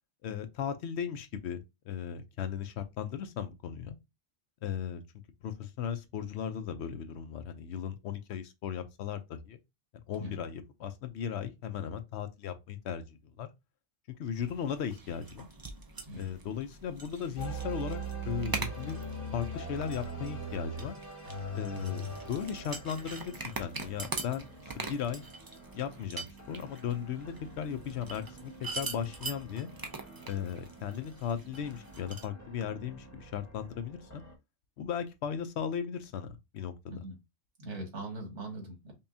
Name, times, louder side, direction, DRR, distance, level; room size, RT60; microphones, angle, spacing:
voice 1, 0.2-1.6 1.9-4.0 4.6-5.0 5.4-9.6 10.1-13.0 13.4-13.5 14.2-15.5 16.2-18.0 18.2-19.0 19.3-20.9 21.5-24.5 24.9-25.2 25.7-29.7 30.3-34.2 34.8-36.7, left 8 dB, 75° left, 0.8 m, -36 dB
sound 1, 14.3-32.2, right 3 dB, 35° right, 0.3 m, -43 dB
sound 2, 17.4-34.3, right 2 dB, 15° left, 1.0 m, -43 dB
voice 2, 36.9-37.2 37.6-38.9, right 1 dB, 80° right, 1.8 m, -41 dB
5.4 x 2.3 x 2.6 m
omnidirectional pair, 1.2 m